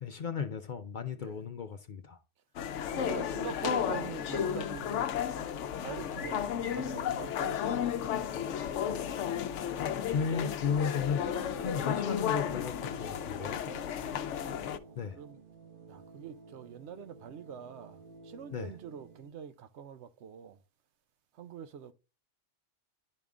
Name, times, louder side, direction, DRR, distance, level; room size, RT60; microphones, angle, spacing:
voice 1, 0.0-2.2 9.8-13.6 15.0-15.2 16.9-17.1 18.5-18.7, left 6 dB, 50° left, 0.6 m, -35 dB
sound 1, 2.6-14.8, left 9 dB, 85° left, 0.9 m, -33 dB
voice 2, 2.9-5.1 5.8-8.5 13.3-14.2 14.6-15.4 15.9-20.6 21.3-21.9, right 7 dB, 70° right, 0.9 m, -44 dB
sound 2, 11.1-19.3, right 1 dB, 50° right, 0.9 m, -52 dB
10.5 x 3.6 x 3.6 m
omnidirectional pair, 1.2 m